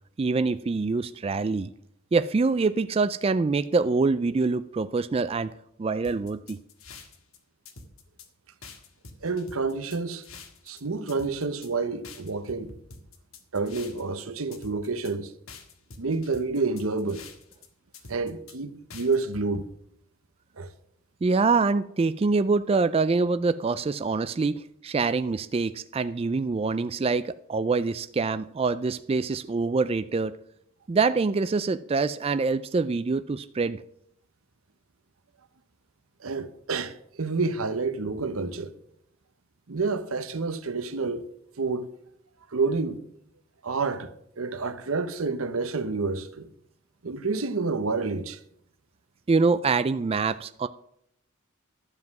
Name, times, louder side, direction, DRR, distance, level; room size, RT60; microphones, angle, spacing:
voice 1, 0.2-1.7 2.1-5.5 5.8-6.6 21.2-30.4 30.9-33.8 49.3-50.7, right 4 dB, 30° right, 0.3 m, -25 dB
sound 1, 6.0-7.4 7.7-8.3 8.6-10.8 11.1-11.7 12.0-14.2 14.5-15.1 15.5-17.7 17.9-18.6 18.9-19.7, left 4 dB, 80° left, 1.6 m, -46 dB
voice 2, 9.2-10.2 10.7-12.7 13.5-15.3 16.0-17.2 18.1-19.7 20.6-20.7 36.2-38.8 39.7-41.3 41.6-41.9 42.5-43.0 43.6-46.5 47.0-48.4, right 4 dB, 85° right, 1.0 m, -29 dB
12.0 x 7.5 x 5.9 m
head